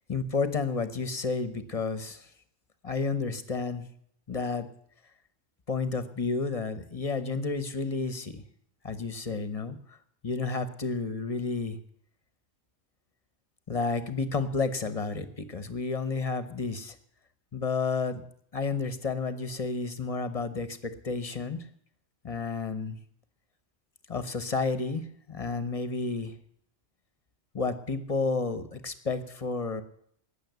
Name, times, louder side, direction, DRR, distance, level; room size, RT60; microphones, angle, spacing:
voice 1, 0.1-2.3 2.8-3.9 4.3-4.7 5.7-8.4 8.8-10.0 10.2-11.8 13.7-16.9 17.5-18.2 18.5-21.7 22.2-23.0 24.1-26.3 27.5-29.8, left 4 dB, 30° left, 12 dB, 1.0 m, -31 dB
18.5 x 6.9 x 8.1 m, 0.68 s
omnidirectional pair, 1.4 m